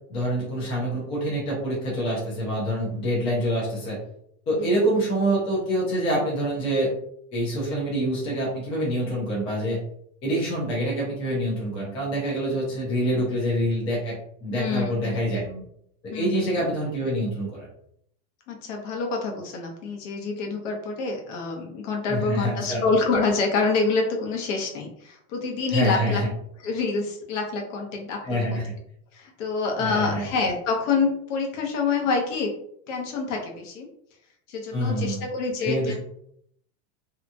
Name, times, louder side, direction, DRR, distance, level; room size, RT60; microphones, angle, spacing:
voice 1, 0.1-4.0 4.5-6.9 7.3-9.8 10.2-15.4 16.1-17.7 22.1-22.8 25.7-26.3 28.2-28.7 29.8-30.2 34.7-35.2 35.6-35.9, equal, 15° left, -6 dB, 0.4 m, -26 dB
voice 2, 14.5-15.6 16.1-16.6 18.5-26.2 26.6-28.6 29.1-32.5 32.9-33.9 34.5-35.9, left 4 dB, 55° left, 2 dB, 0.8 m, -27 dB
2.8 x 2.3 x 2.5 m, 0.72 s
supercardioid pair, 155°, 45 cm